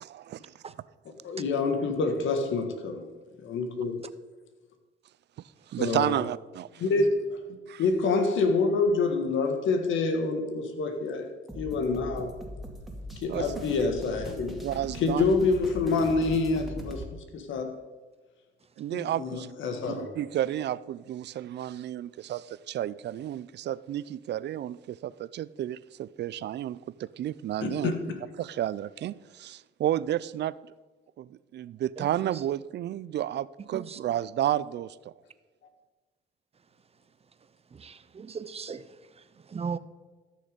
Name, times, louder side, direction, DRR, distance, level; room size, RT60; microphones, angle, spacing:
voice 1, 0.0-0.5 5.7-6.8 7.7-7.8 13.3-13.9 14.6-15.3 18.8-19.5 19.8-27.9 28.4-30.5 31.2-35.1, right 12 dB, 60° right, 0.4 m, -32 dB
voice 2, 1.2-3.1 3.4-4.0 5.8-6.2 6.8-7.4 7.8-11.3 11.5-12.3 13.2-14.6 15.0-17.0 17.3-17.7 18.9-20.1 27.6-28.2, left 3 dB, 75° left, 1.7 m, -27 dB
sound 1, 11.5-17.1, right 1 dB, ahead, 2.2 m, -40 dB
voice 3, 37.8-38.8 39.5-39.8, right 5 dB, 30° right, 0.7 m, -36 dB
13.5 x 6.6 x 5.2 m
cardioid pair, 90°, 20 cm